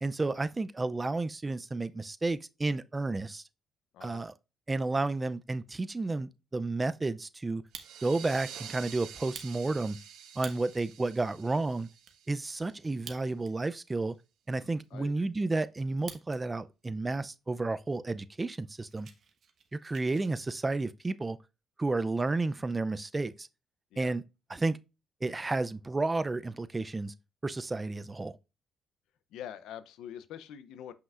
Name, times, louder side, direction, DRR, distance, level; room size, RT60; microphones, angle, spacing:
voice 1, 0.0-3.4 4.0-4.3 4.7-7.6 8.0-10.0 10.4-11.9 12.3-14.2 14.5-19.1 19.8-21.4 21.8-23.5 24.0-24.2 24.5-24.8 25.2-27.1 27.4-28.3, right 3 dB, 20° right, 0.4 m, -31 dB
voice 2, 3.9-4.3 14.9-15.3 23.9-24.1 29.3-30.9, left 10 dB, 85° left, 0.5 m, -44 dB
Fire, 7.5-8.3 8.7-8.8 9.2-10.9 11.4-11.5 11.7-12.2 12.9-13.7 14.0-14.1 14.7-16.4 16.7-17.2 17.7-17.8 18.1-18.3 18.6-20.3, right 6 dB, 60° right, 1.2 m, -49 dB
sound 1, 7.7-13.0, right 9 dB, 90° right, 1.1 m, -48 dB
7.6 x 5.7 x 2.4 m
cardioid pair, 90°, 0 cm